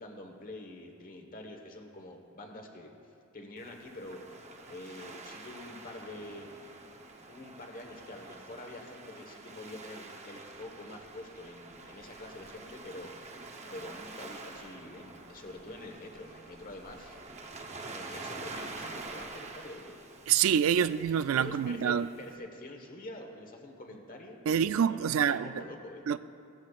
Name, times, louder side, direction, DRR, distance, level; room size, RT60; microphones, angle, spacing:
voice 1, 0.0-2.9 3.3-4.4 4.7-6.6 7.3-13.3 13.7-17.2 17.9-20.0 20.7-20.9 21.4-26.0, left 1 dB, 40° left, 1.2 m, -46 dB
Waves surf, 3.6-22.4, right 3 dB, 30° right, 0.8 m, -47 dB
voice 2, 20.3-22.1 24.5-25.5 26.1-26.2, right 8 dB, 70° right, 0.3 m, -26 dB
17.0 x 13.0 x 2.4 m
head